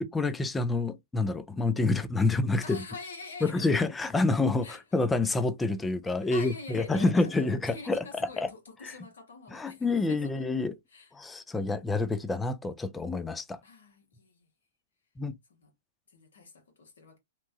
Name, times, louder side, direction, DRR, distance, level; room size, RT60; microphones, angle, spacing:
voice 1, 0.0-2.8 3.4-8.0 8.4-8.5 8.8-8.9 9.5-10.8 11.1-13.6 15.2-15.3, left 3 dB, 10° left, 0.4 m, -28 dB
voice 2, 2.6-3.9 4.6-4.8 6.3-10.4 10.9-11.1 13.6-14.5 15.5-15.7 16.1-17.2, left 4 dB, 75° left, 1.2 m, -45 dB
2.8 x 2.2 x 2.6 m
hypercardioid pair, 115°, 0 cm